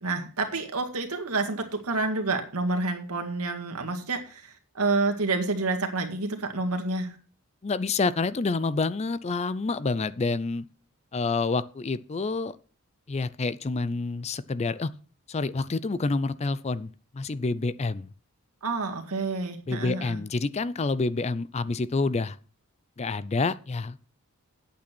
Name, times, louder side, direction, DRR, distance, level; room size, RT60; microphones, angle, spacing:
voice 1, 0.0-7.2 18.6-20.2, right 3 dB, 85° right, 4 dB, 2.0 m, -29 dB
voice 2, 7.6-10.7 11.1-12.5 13.1-14.9 15.3-18.1 19.7-22.4 23.0-24.1, left 3 dB, 30° left, 17 dB, 0.4 m, -28 dB
8.8 x 8.5 x 6.1 m, 0.40 s
head